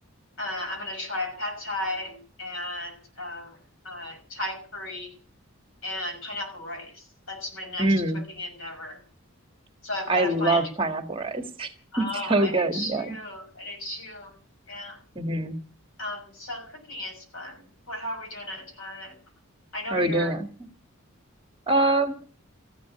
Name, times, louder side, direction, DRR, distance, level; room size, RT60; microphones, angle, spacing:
voice 1, 0.4-3.6 3.8-5.2 5.8-9.0 9.8-10.7 11.9-14.4 14.7-15.0 16.0-19.2 19.7-20.4, left 1 dB, 70° left, 5 dB, 6.1 m, -35 dB
voice 2, 7.8-8.2 10.1-11.7 12.0-13.1 15.2-15.6 19.9-20.5 21.7-22.1, right 2 dB, 25° right, 6 dB, 1.8 m, -24 dB
14.5 x 11.5 x 7.8 m, 0.38 s
head